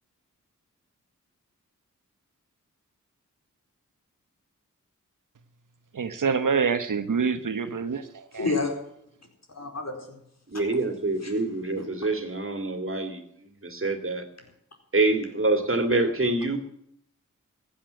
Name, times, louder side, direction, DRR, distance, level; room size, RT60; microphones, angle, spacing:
voice 1, 5.9-8.5, right 5 dB, 80° right, 1.3 m, -26 dB
voice 2, 8.3-8.7 9.5-10.2 10.5-10.6 11.2-11.3 11.7-11.8, left 3 dB, 55° left, 4.4 m, -30 dB
voice 3, 10.5-14.3 14.9-16.6, right 2 dB, 40° right, 2.5 m, -26 dB
15.0 x 8.7 x 9.2 m
cardioid pair, 45°, 31 cm